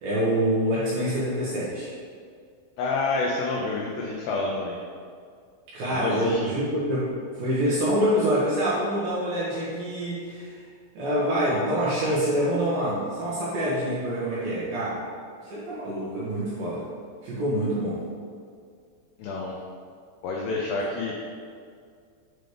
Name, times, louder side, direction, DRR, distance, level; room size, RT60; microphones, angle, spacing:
voice 1, 0.0-1.9 5.7-10.6 10.9-15.0 15.4-16.8 17.2-18.0, equal, 60° right, -9 dB, 2.6 m, -26 dB
voice 2, 2.8-4.8 5.9-6.5 19.2-19.6 20.2-21.1, left 3 dB, 85° left, -2 dB, 2.4 m, -28 dB
8.0 x 3.9 x 5.0 m, 2.2 s
omnidirectional pair, 5.7 m